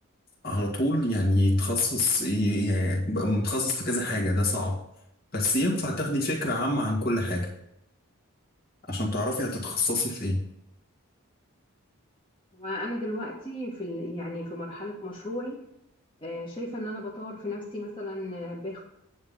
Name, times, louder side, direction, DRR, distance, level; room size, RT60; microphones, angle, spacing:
voice 1, 0.4-4.8 5.3-7.5 8.9-10.4, left 1 dB, 45° left, -3 dB, 2.0 m, -26 dB
voice 2, 12.5-15.6 16.2-18.8, left 1 dB, 20° left, -6 dB, 1.6 m, -35 dB
9.4 x 3.7 x 7.1 m, 0.80 s
head